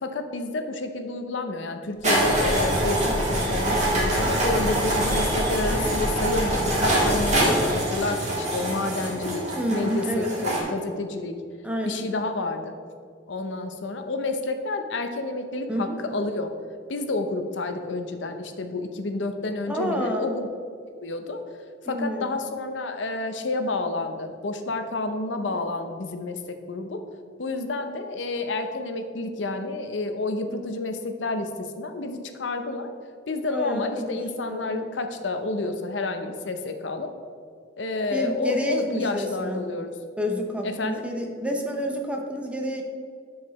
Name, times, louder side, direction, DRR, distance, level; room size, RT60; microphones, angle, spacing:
voice 1, 0.0-3.0 3.5-11.4 11.8-12.7 13.3-16.5 16.9-20.5 21.0-21.4 21.8-27.0 27.4-32.9 33.3-37.1 37.8-40.0 40.6-41.1, left 2 dB, 90° left, 7 dB, 0.7 m, -30 dB
Train, 2.0-7.7, left 1 dB, 25° left, 0.5 m, -31 dB
sound 1, 2.0-10.6, right 1 dB, 40° right, 1.7 m, -25 dB
voice 2, 3.0-3.5 5.7-6.0 9.5-10.6 11.6-12.1 15.7-16.0 19.7-20.3 21.9-22.4 33.5-34.8 38.1-39.7 40.2-42.8, equal, 5° right, 2 dB, 0.7 m, -29 dB
10.5 x 4.8 x 3.1 m, 2.2 s
head